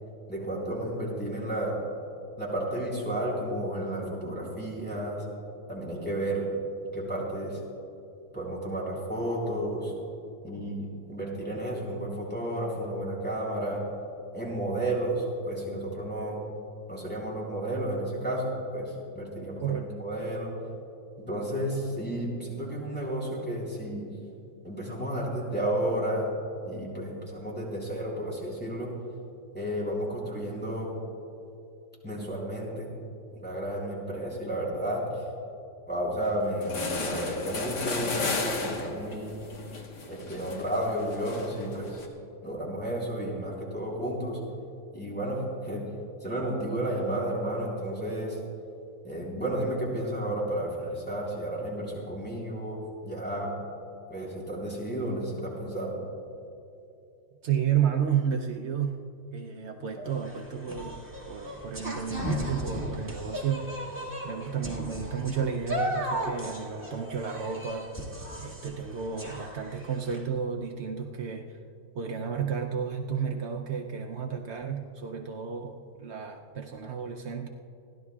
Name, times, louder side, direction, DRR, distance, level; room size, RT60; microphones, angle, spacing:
voice 1, 0.3-1.7 2.4-5.2 5.7-6.5 6.9-7.6 8.3-9.9 10.4-13.8 14.3-16.4 16.9-20.5 21.2-24.0 24.6-26.3 26.6-28.9 29.5-30.9 32.0-32.9 33.3-35.2 35.9-38.1 38.5-39.3 40.1-42.0 42.4-44.4 44.9-45.8 46.2-48.4 49.0-53.5 54.1-56.0 60.0-60.1, right 1 dB, 5° left, -5 dB, 3.8 m, -32 dB
sound 1, 36.2-36.3 36.6-42.1, left 3 dB, 65° left, 2.0 m, -34 dB
voice 2, 57.4-67.9 68.4-71.6 71.9-77.5, right 7 dB, 80° right, 2 dB, 0.6 m, -32 dB
sound 2, 60.1-70.2, equal, 10° right, 1.6 m, -36 dB
29.0 x 11.5 x 2.4 m, 2.7 s
omnidirectional pair, 2.0 m